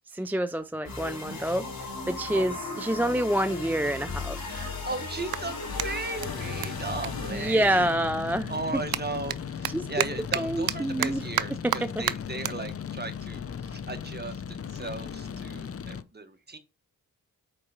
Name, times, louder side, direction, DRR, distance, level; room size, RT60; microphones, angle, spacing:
voice 1, 0.1-4.4 7.3-8.6 9.7-9.9 10.4-12.1, right 1 dB, 5° right, 0.3 m, -28 dB
sound 1, 0.8-8.0, left 3 dB, 90° left, 3.2 m, -36 dB
voice 2, 2.1-2.6 4.3-7.9 8.5-16.6, right 3 dB, 30° right, 1.4 m, -37 dB
Clapping, 5.3-8.0 8.3-14.9, right 12 dB, 80° right, 0.6 m, -35 dB
sound 2, 6.2-16.0, left 7 dB, 40° left, 0.6 m, -37 dB
6.6 x 4.6 x 4.4 m
cardioid pair, 70°, 35 cm